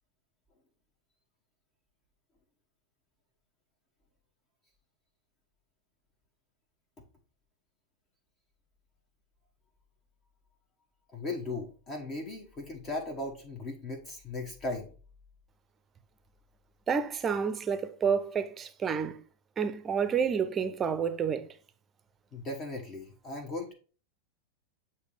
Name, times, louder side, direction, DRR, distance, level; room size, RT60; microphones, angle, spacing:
voice 1, 11.1-14.9 22.3-23.7, left 2 dB, 30° left, 1.2 m, -37 dB
voice 2, 16.9-19.2 19.6-21.5, right 6 dB, 20° right, 0.7 m, -29 dB
8.2 x 2.9 x 4.9 m
figure-of-eight pair, 90°, 0 cm